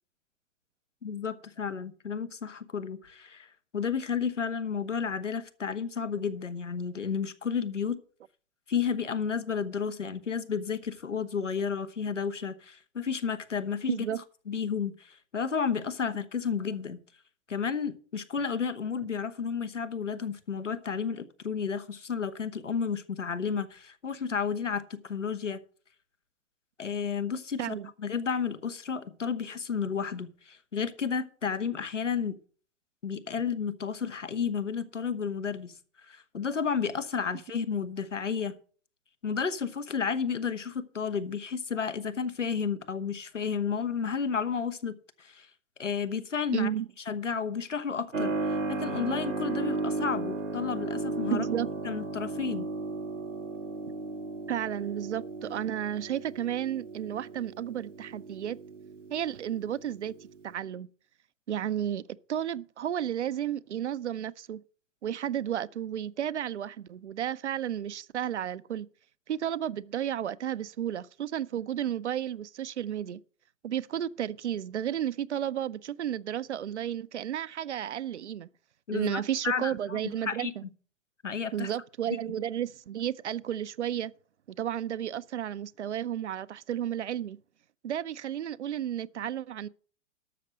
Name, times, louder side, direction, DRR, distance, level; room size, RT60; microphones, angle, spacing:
voice 1, 1.0-8.0 8.7-14.0 14.5-17.0 17.5-25.6 26.8-32.4 33.0-35.7 36.0-38.5 39.2-45.5 45.8-46.7 47.1-48.3 48.7-51.5 51.8-52.7 78.9-80.5 81.2-81.7, left 6 dB, 80° left, 1.3 m, -32 dB
voice 2, 13.9-14.2 27.6-27.9 46.5-46.9 51.3-51.7 54.5-58.6 59.1-60.1 60.4-60.9 61.5-62.0 62.3-64.6 65.0-68.9 69.3-73.2 73.6-78.5 78.9-80.6 81.5-84.1 84.5-87.4 87.8-89.7, right 10 dB, 70° right, 0.6 m, -32 dB
Keyboard (musical), 48.1-60.5, right 3 dB, 90° right, 1.1 m, -35 dB
12.5 x 6.6 x 6.3 m
figure-of-eight pair, 105°, 36 cm